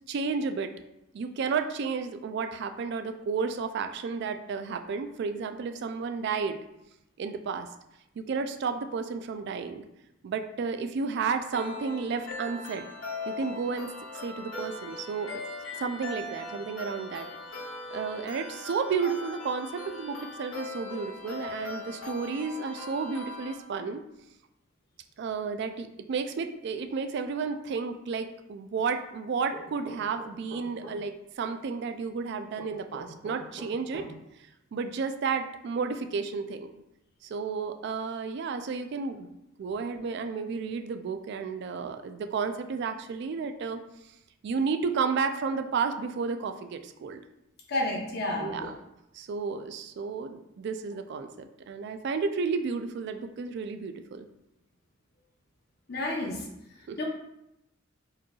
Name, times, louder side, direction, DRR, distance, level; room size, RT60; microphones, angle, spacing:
voice 1, 0.1-0.7 1.1-6.6 7.2-7.7 8.2-9.8 10.2-12.8 13.3-13.9 14.2-15.4 15.7-17.3 17.9-24.0 25.2-34.1 34.7-36.7 37.2-39.3 39.6-43.8 44.4-47.2 48.4-48.7 49.1-54.3 56.9-57.0, right 5 dB, 55° right, 8 dB, 0.3 m, -32 dB
sound 1, 11.5-23.5, left 3 dB, 75° left, 1.1 m, -40 dB
sound 2, 29.5-31.0 32.5-34.1, right 1 dB, 40° right, 1.3 m, -43 dB
voice 2, 47.7-48.7 55.9-56.4 57.0-57.1, left 1 dB, 50° left, 0 dB, 0.8 m, -30 dB
4.6 x 3.1 x 2.3 m, 0.85 s
head